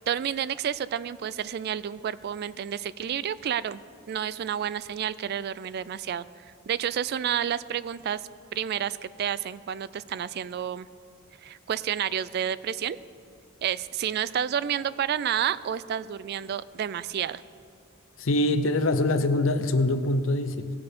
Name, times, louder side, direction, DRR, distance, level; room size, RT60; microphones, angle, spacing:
voice 1, 0.1-3.8 4.1-6.3 6.7-8.2 8.5-10.9 11.4-13.0 13.6-17.4, right 9 dB, 55° right, 18 dB, 0.3 m, -30 dB
voice 2, 18.2-20.7, left 2 dB, 80° left, 11 dB, 0.7 m, -24 dB
18.0 x 6.8 x 5.2 m, 2.4 s
head